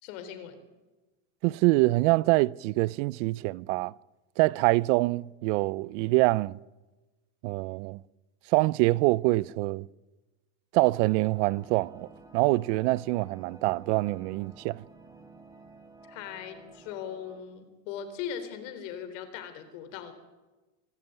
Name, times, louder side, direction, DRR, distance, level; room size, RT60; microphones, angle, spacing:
voice 1, 0.0-0.6 16.1-20.1, left 8 dB, 70° left, 3.8 m, -39 dB
voice 2, 1.4-3.9 4.4-6.6 7.4-8.0 8.5-9.9 10.7-12.1 12.3-14.8, right 21 dB, 65° right, 0.6 m, -25 dB
sound 1, 10.7-17.4, right 3 dB, 10° right, 2.1 m, -51 dB
24.5 x 13.0 x 9.1 m
supercardioid pair, 145°, 39 cm